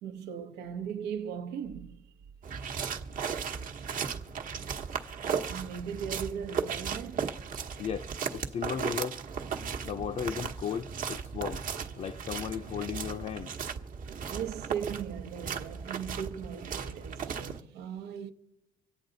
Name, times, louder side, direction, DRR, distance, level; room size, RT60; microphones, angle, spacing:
voice 1, 0.0-2.0 5.5-7.3 14.3-18.3, right 8 dB, 85° right, 0.9 m, -38 dB
sound 1, 2.4-17.6, right 6 dB, 55° right, 1.1 m, -36 dB
voice 2, 7.8-9.2 9.8-11.6 12.0-13.5, left 7 dB, 40° left, 0.5 m, -35 dB
25.5 x 8.6 x 3.9 m
cardioid pair, 110°, 17 cm